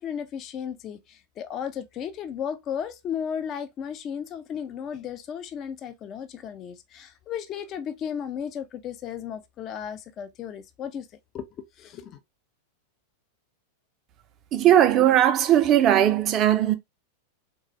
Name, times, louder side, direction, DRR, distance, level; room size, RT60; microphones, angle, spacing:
voice 1, 0.0-11.1 11.3-11.5 11.8-12.2, left 8 dB, 30° left, 0.6 m, -34 dB
voice 2, 14.5-16.8, right 11 dB, 35° right, 0.5 m, -18 dB
3.9 x 2.3 x 3.1 m
figure-of-eight pair, 90°, 0 cm